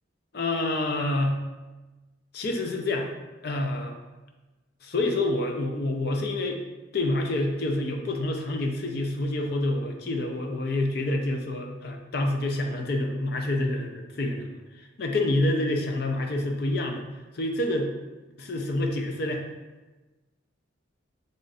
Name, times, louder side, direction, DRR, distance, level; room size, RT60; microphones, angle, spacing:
voice 1, 0.3-1.4 2.3-3.1 3.4-4.0 4.8-6.6 6.9-17.0 17.3-17.9 18.4-19.4, left 2 dB, 50° left, 3 dB, 0.4 m, -27 dB
3.7 x 2.4 x 4.0 m, 1.1 s
head